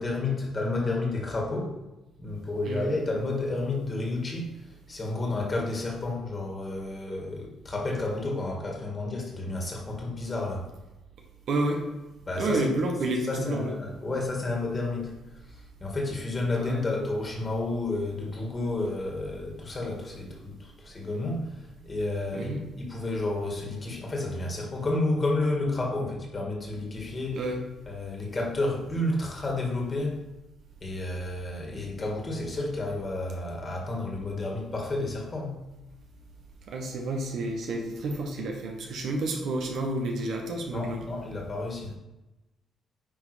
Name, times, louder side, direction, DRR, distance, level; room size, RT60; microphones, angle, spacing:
voice 1, 0.0-1.8 2.2-10.7 12.2-12.7 13.3-15.1 15.4-27.4 27.9-30.2 30.8-35.6 40.7-41.9, left 2 dB, 30° left, -1 dB, 2.1 m, -31 dB
voice 2, 2.7-3.0 11.5-11.8 12.4-13.7 16.5-16.9 22.3-22.6 27.4-27.6 36.7-41.0, right 2 dB, 65° right, 1 dB, 1.2 m, -30 dB
9.4 x 3.4 x 5.0 m, 1.0 s
cardioid pair, 90°, 0 cm